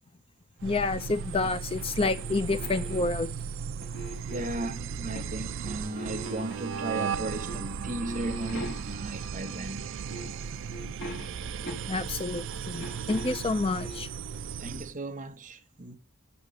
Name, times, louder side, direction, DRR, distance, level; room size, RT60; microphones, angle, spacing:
voice 1, 0.6-3.3 11.9-14.1, left 3 dB, 25° left, 0.5 m, -29 dB
sound 1, 0.6-14.9, right 6 dB, 60° right, 0.4 m, -36 dB
sound 2, 0.9-3.3 3.8-5.4 5.7-7.1 7.5-7.7 8.0-9.2 9.8-9.9 10.1-12.2 12.5-14.1, right 1 dB, 55° left, 1.7 m, -43 dB
voice 2, 4.3-10.0 14.6-16.0, right 2 dB, 35° right, 0.9 m, -36 dB
8.1 x 3.0 x 6.3 m
head